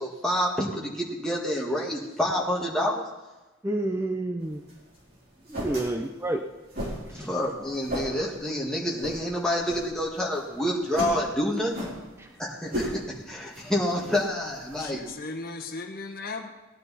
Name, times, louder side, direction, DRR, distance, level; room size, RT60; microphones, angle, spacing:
voice 1, 0.0-3.0 7.1-11.9 12.4-15.0, equal, 5° left, -4 dB, 1.8 m, -28 dB
voice 2, 3.6-4.6 5.5-6.4 7.2-7.3 12.2-12.3, right 2 dB, 10° right, 4 dB, 0.6 m, -29 dB
sound 1, 4.4-15.1, equal, 45° right, 3.8 m, -38 dB
voice 3, 14.8-16.5, left 3 dB, 45° left, 3 dB, 1.3 m, -37 dB
18.0 x 10.5 x 4.2 m, 1.1 s
head